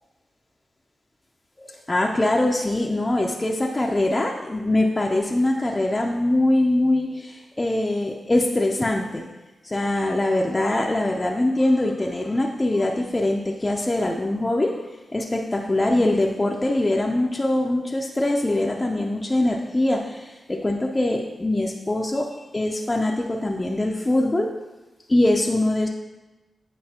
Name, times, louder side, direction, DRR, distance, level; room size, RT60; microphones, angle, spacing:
voice 1, 1.6-9.3 9.6-24.5 25.1-25.9, left 1 dB, 20° left, 0 dB, 0.5 m, -23 dB
8.6 x 5.2 x 2.8 m, 1.1 s
wide cardioid pair, 105°, 0 cm